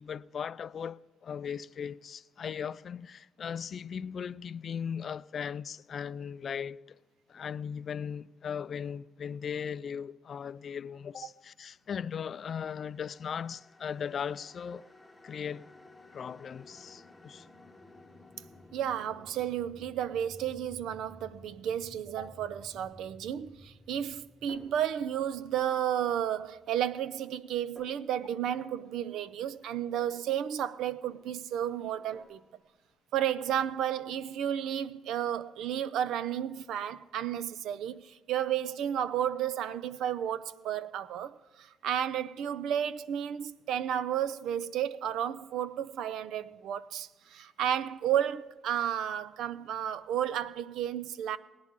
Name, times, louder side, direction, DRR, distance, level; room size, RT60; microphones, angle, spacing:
voice 1, 0.0-6.8 7.3-14.9 15.2-15.7 16.1-17.5 22.2-22.3, left 7 dB, 55° left, 0.3 m, -38 dB
sound 1, 12.1-27.3, left 2 dB, 5° left, 1.1 m, -55 dB
voice 2, 18.7-32.4 33.1-51.4, right 10 dB, 85° right, 0.4 m, -32 dB
Snare drum, 24.5-25.3 25.6-26.1 26.7-27.4 27.8-28.1 28.6-30.7 31.0-31.5 32.0-32.7, equal, 40° right, 4.1 m, -57 dB
19.0 x 9.5 x 3.7 m
cardioid pair, 90°, 0 cm